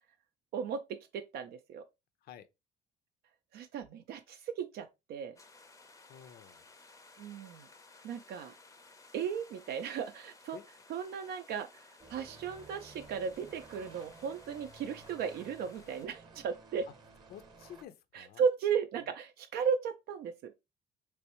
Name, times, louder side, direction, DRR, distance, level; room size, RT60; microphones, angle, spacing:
voice 1, 0.5-1.8 3.5-5.4 7.2-7.7 8.0-8.5 9.1-10.6 10.9-16.9 18.1-20.5, right 6 dB, 65° right, 0.4 m, -35 dB
sound 1, 5.4-16.1, left 3 dB, 20° left, 0.5 m, -58 dB
voice 2, 6.1-6.6 10.5-10.9 17.3-18.4 19.0-19.1, left 10 dB, 65° left, 0.5 m, -51 dB
sound 2, 12.0-17.8, right 3 dB, 25° right, 0.8 m, -55 dB
3.4 x 3.0 x 2.9 m
cardioid pair, 110°, 17 cm